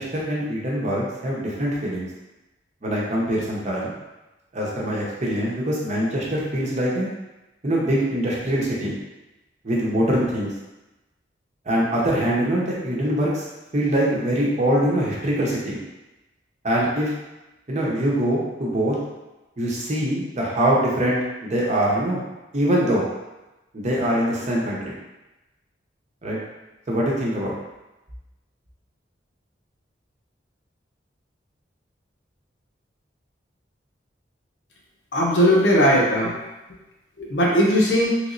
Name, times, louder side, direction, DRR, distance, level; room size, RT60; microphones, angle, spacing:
voice 1, 0.0-2.1 2.8-3.9 4.5-7.1 7.6-8.9 9.6-10.5 11.7-13.4 13.7-15.8 16.6-17.1 17.7-19.0 19.6-22.2 22.5-23.1 23.7-24.9 26.2-26.4 26.9-27.5, right 1 dB, 40° right, -5 dB, 0.8 m, -23 dB
voice 2, 35.1-36.3 37.2-38.1, equal, 70° left, -4 dB, 0.8 m, -18 dB
3.3 x 3.0 x 2.6 m, 1.0 s
head